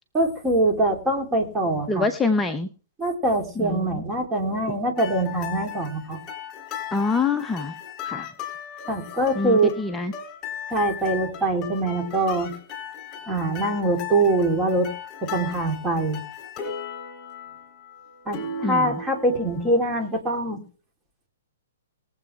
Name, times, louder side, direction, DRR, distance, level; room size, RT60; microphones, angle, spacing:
voice 1, 0.1-2.0 3.0-6.2 8.9-9.7 10.7-12.5 13.3-14.9 15.2-16.2 18.3-20.6, right 2 dB, 15° right, 3 dB, 3.0 m, -23 dB
voice 2, 1.9-2.7 3.6-4.0 6.9-7.8 8.0-8.3 9.3-10.1 18.6-19.0, left 3 dB, 10° left, 6 dB, 0.8 m, -25 dB
sound 1, 5.0-20.1, left 6 dB, 30° left, 3.3 m, -37 dB
21.5 x 7.8 x 3.3 m, 0.41 s
figure-of-eight pair, 120°, 0 cm